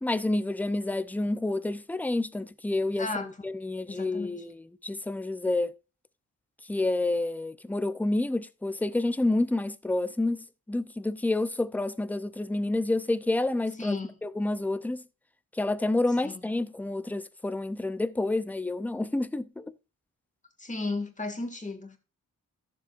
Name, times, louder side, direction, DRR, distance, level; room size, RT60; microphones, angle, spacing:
voice 1, 0.0-5.8 6.7-15.0 15.5-19.7, left 2 dB, 5° left, 0.5 m, -29 dB
voice 2, 3.0-3.4 3.9-4.4 13.8-14.1 16.2-16.4 20.6-22.0, left 3 dB, 20° left, 2.0 m, -34 dB
15.0 x 7.0 x 2.5 m
wide cardioid pair, 115°, 34 cm